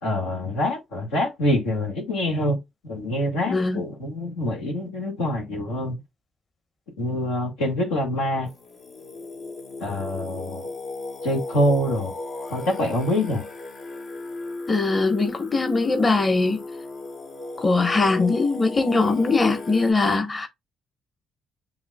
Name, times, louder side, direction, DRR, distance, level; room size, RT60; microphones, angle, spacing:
voice 1, 0.0-2.6 2.8-6.0 7.0-8.5 9.8-10.7 11.2-12.2 12.5-13.4, left 1 dB, 80° left, 1.8 m, -25 dB
voice 2, 3.5-3.8 14.7-16.6 17.6-20.5, left 3 dB, 30° left, 1.3 m, -21 dB
Singing, 8.5-19.9, left 2 dB, 65° left, 1.5 m, -36 dB
7.9 x 2.9 x 2.3 m
hypercardioid pair, 50°, 0 cm